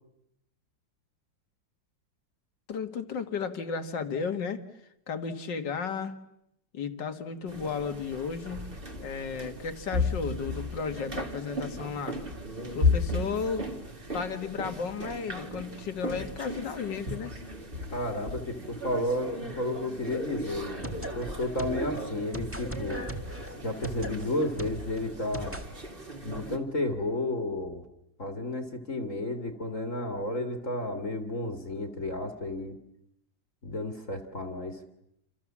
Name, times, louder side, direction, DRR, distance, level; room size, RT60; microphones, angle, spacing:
voice 1, 2.7-4.6 5.1-6.2 6.7-8.6 9.0-12.2 12.7-13.7 14.1-17.3, left 5 dB, 70° left, 9 dB, 2.4 m, -34 dB
sound 1, 7.5-26.6, left 2 dB, 30° right, 2.6 m, -35 dB
voice 2, 17.9-23.0 23.6-25.6 26.2-27.8 28.2-32.8 33.6-34.8, left 1 dB, 45° left, 6 dB, 2.4 m, -32 dB
sound 2, 20.5-25.7, right 1 dB, 5° right, 1.8 m, -39 dB
29.0 x 27.5 x 7.4 m, 0.80 s
omnidirectional pair, 2.0 m